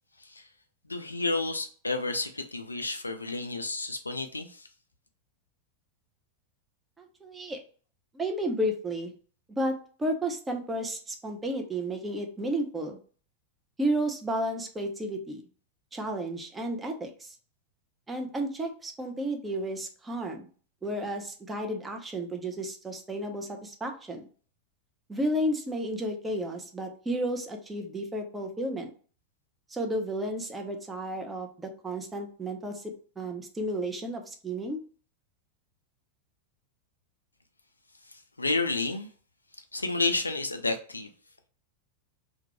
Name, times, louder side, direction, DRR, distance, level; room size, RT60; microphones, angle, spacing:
voice 1, 0.9-4.6 38.4-39.1 39.7-41.1, left 3 dB, 80° left, 7 dB, 0.3 m, -30 dB
voice 2, 7.0-7.6 8.1-9.1 9.6-13.0 13.8-15.4 15.9-17.3 18.1-20.4 20.8-24.3 25.1-28.9 29.7-32.8 33.2-34.8, right 1 dB, 15° right, 3 dB, 0.5 m, -32 dB
2.3 x 2.1 x 2.7 m, 0.42 s
figure-of-eight pair, 90°, 0 cm